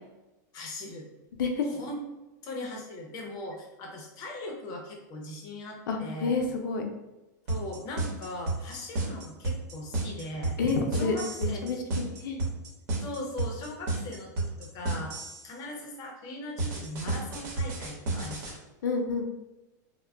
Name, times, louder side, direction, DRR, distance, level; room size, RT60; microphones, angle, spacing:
voice 1, 0.5-1.1 1.6-2.0 2.4-6.4 7.5-10.6 11.0-11.8 13.0-15.1 15.4-18.6, left 1 dB, 40° left, 1 dB, 0.7 m, -39 dB
voice 2, 5.9-6.8 10.6-11.8 12.2-12.4 18.8-19.2, left 4 dB, 85° left, 3 dB, 0.5 m, -29 dB
sound 1, 7.5-15.5 16.6-18.5, right 3 dB, 60° right, 1.0 m, -31 dB
2.2 x 2.1 x 3.3 m, 1.0 s
supercardioid pair, 135°, 10 cm